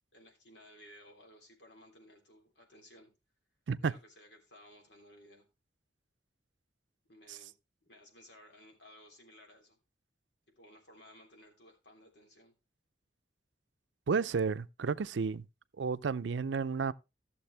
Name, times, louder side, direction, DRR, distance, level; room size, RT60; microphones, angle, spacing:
voice 1, 0.1-3.1 3.8-5.5 7.1-7.5 7.8-9.8 10.5-12.5, equal, 75° left, 3.2 m, -58 dB
voice 2, 14.1-15.5 15.8-16.9, right 5 dB, 85° right, 0.5 m, -32 dB
14.5 x 6.9 x 3.3 m
head